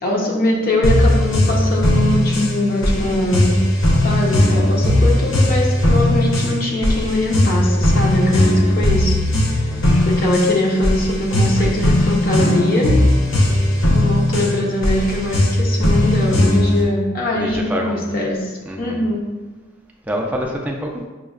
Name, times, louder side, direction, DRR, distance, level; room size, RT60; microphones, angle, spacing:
voice 1, 0.0-3.6 4.0-9.7 10.1-13.0 13.9-19.2, left 1 dB, 45° left, -3 dB, 0.5 m, -21 dB
sound 1, 0.8-16.8, left 1 dB, 90° left, 0.6 m, -17 dB
voice 2, 9.7-10.1 11.6-11.8 17.4-18.0 18.7-19.0 20.1-21.1, equal, 10° right, -1 dB, 0.3 m, -26 dB
6.0 x 2.1 x 2.3 m, 1.2 s
head